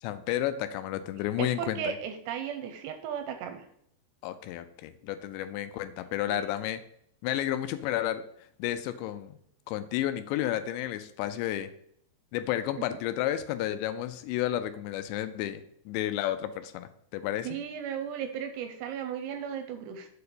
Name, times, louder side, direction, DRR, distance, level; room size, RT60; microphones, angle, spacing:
voice 1, 0.0-2.0 4.2-6.8 7.2-8.2 8.6-9.4 9.7-11.7 12.3-17.6, left 12 dB, 80° left, 11 dB, 2.7 m, -31 dB
voice 2, 1.4-3.7 6.3-6.5 12.8-12.9 17.4-20.1, right 8 dB, 85° right, 7 dB, 2.5 m, -35 dB
7.5 x 4.5 x 6.7 m, 0.70 s
omnidirectional pair, 5.4 m